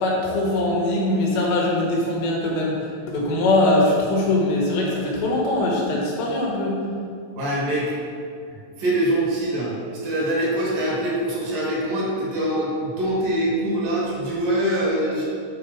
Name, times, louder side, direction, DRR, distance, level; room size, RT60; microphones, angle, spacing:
voice 1, 0.0-6.9, left 2 dB, 85° left, -3 dB, 3.8 m, -22 dB
voice 2, 7.3-7.9 8.8-9.7 10.0-15.2, right 1 dB, 60° right, -5 dB, 2.9 m, -23 dB
9.1 x 5.2 x 4.8 m, 2.3 s
omnidirectional pair, 4.9 m